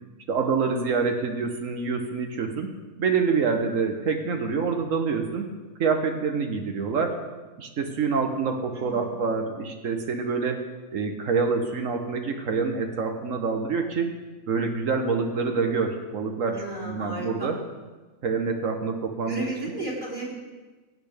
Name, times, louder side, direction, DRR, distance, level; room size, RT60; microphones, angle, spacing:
voice 1, 0.3-7.2 7.6-10.6 10.9-14.1 14.5-17.6 18.2-19.7, right 5 dB, 75° right, 4 dB, 1.4 m, -26 dB
voice 2, 8.7-9.1 16.5-17.5 19.3-20.3, right 2 dB, 35° right, -5 dB, 3.1 m, -34 dB
17.0 x 8.5 x 3.4 m, 1.3 s
omnidirectional pair, 1.4 m